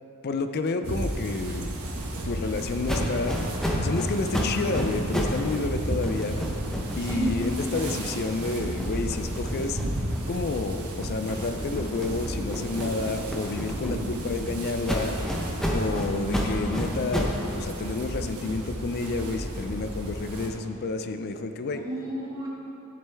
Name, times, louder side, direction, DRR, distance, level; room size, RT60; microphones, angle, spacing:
voice 1, 0.2-1.8 2.2-3.4 3.8-6.5 7.0-9.8 10.3-15.2 15.7-21.8, left 3 dB, 45° left, 8 dB, 0.4 m, -30 dB
sound 1, 0.8-20.5, right 1 dB, 90° right, 1.1 m, -33 dB
sound 2, 1.8-7.9, right 1 dB, 60° right, 1.2 m, -48 dB
sound 3, 2.9-5.5 5.8-10.5 11.0-14.3 14.8-17.4, equal, ahead, 0.8 m, -31 dB
voice 2, 7.0-7.4 13.9-14.5 15.9-16.2 21.8-22.5, right 1 dB, 15° right, -6 dB, 1.6 m, -33 dB
10.5 x 7.6 x 3.4 m, 3.0 s
head